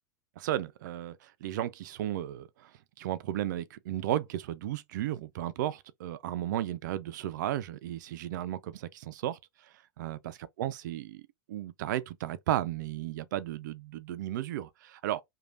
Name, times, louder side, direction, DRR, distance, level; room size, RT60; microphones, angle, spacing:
voice 1, 0.4-2.7 3.0-9.4 10.0-10.2 10.6-11.2 11.5-15.2, right 12 dB, 60° right, 0.3 m, -34 dB
3.1 x 2.2 x 2.6 m
hypercardioid pair, 105°, 11 cm